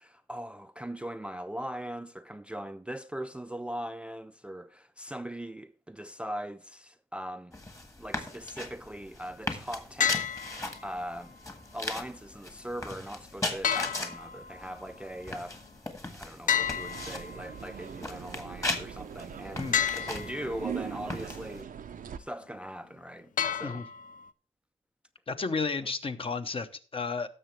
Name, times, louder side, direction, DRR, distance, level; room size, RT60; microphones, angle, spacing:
voice 1, 0.0-7.6 8.0-10.3 10.8-11.4 11.7-15.6 16.1-21.7 22.2-23.9 25.8-25.9, equal, 10° right, 0.4 m, -40 dB
sound 1, 7.5-21.6, left 2 dB, 25° left, 1.5 m, -39 dB
sound 2, 10.0-11.0 13.6-14.7 16.5-17.7 19.7-20.7 23.4-24.3, left 8 dB, 75° left, 0.6 m, -31 dB
sound 3, 16.6-22.2, right 8 dB, 80° right, 0.6 m, -41 dB
voice 2, 25.3-27.3, left 4 dB, 40° left, 0.9 m, -32 dB
16.5 x 6.9 x 3.2 m
wide cardioid pair, 150°, 14 cm